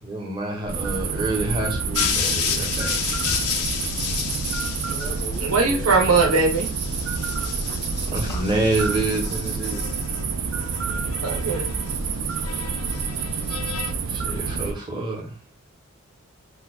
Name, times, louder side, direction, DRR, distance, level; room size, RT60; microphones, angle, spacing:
voice 1, 0.0-3.0 8.1-9.9 14.1-15.4, right 2 dB, 20° right, 0.7 m, -27 dB
sound 1, 0.7-14.7, right 4 dB, 60° right, 0.4 m, -28 dB
sound 2, 1.9-5.4 6.4-10.2 10.5-11.9 12.3-13.9, left 7 dB, 80° left, 0.5 m, -31 dB
voice 2, 4.9-6.0 7.3-7.8 8.3-8.4, left 1 dB, 15° left, 0.4 m, -39 dB
voice 3, 5.4-6.7 10.9-11.7, right 3 dB, 75° right, 0.9 m, -21 dB
2.9 x 2.1 x 3.5 m
head